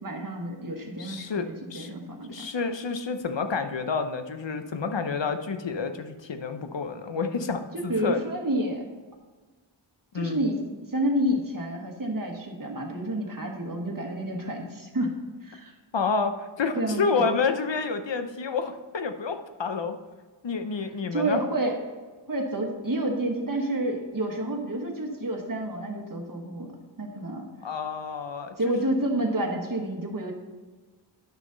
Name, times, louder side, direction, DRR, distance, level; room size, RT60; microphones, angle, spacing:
voice 1, 0.0-2.5 7.7-8.8 10.1-15.1 15.4-15.7 16.7-17.3 21.1-21.8 22.3-26.7 27.0-27.5 28.6-30.3, right 1 dB, 45° right, 1 dB, 1.5 m, -29 dB
voice 2, 0.9-1.9 2.3-8.2 10.1-10.4 15.9-20.0 20.4-21.4 27.6-28.8, left 5 dB, 65° left, 8 dB, 0.8 m, -29 dB
10.0 x 6.1 x 3.9 m, 1.4 s
wide cardioid pair, 50°, 47 cm